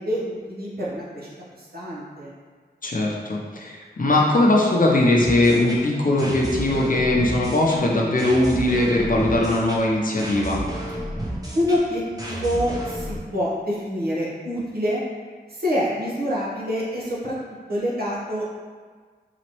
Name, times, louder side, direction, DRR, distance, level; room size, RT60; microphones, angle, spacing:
voice 1, 0.0-2.3 11.5-15.0 15.5-17.3 17.7-18.5, equal, 60° right, -6 dB, 1.0 m, -26 dB
voice 2, 2.8-10.6, left 1 dB, 50° left, -2 dB, 0.7 m, -20 dB
sound 1, 5.2-13.2, right 1 dB, 20° right, 0.8 m, -32 dB
4.0 x 3.0 x 3.0 m, 1.5 s
wide cardioid pair, 85°, 18 cm